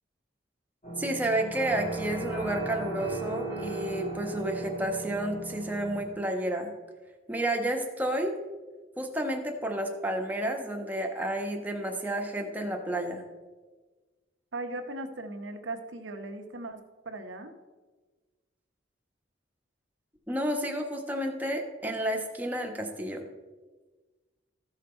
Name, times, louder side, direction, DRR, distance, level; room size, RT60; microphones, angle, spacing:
sound 1, 0.8-6.0, right 2 dB, 40° left, 3.1 m, -36 dB
voice 1, 1.0-6.7 7.3-8.4 9.0-13.2 20.3-23.2, right 1 dB, 10° right, 2 dB, 1.1 m, -31 dB
voice 2, 14.5-17.5, right 2 dB, 85° right, 6 dB, 1.0 m, -38 dB
14.0 x 5.9 x 4.4 m, 1.3 s
head